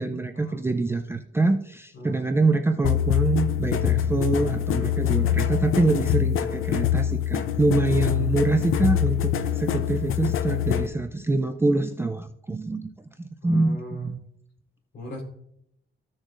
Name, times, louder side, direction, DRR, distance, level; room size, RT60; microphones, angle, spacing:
voice 1, 0.0-12.9 13.2-14.2, right 2 dB, 10° right, 5 dB, 0.4 m, -25 dB
voice 2, 1.9-2.3 4.8-5.1 8.1-8.4 13.4-14.1 14.9-15.2, left 1 dB, 60° left, -1 dB, 3.8 m, -41 dB
sound 1, 2.8-10.9, left 11 dB, 80° left, 0.6 m, -24 dB
14.5 x 6.3 x 2.5 m, 0.72 s
wide cardioid pair, 180°, 21 cm